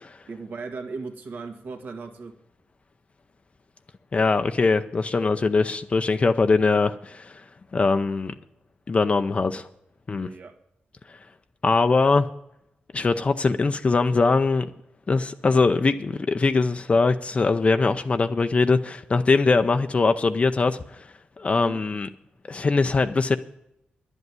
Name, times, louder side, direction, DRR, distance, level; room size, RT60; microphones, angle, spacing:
voice 1, 0.3-2.4 10.2-10.6 21.5-21.8, right 4 dB, 65° right, 5 dB, 1.8 m, -37 dB
voice 2, 4.1-7.4 7.7-8.3 8.9-9.7 10.1-10.3 11.6-12.3 12.9-14.7 15.1-21.1 21.4-22.1 22.5-23.4, left 4 dB, 35° left, 8 dB, 0.5 m, -22 dB
10.5 x 8.0 x 9.5 m, 0.83 s
cardioid pair, 80°, 3 cm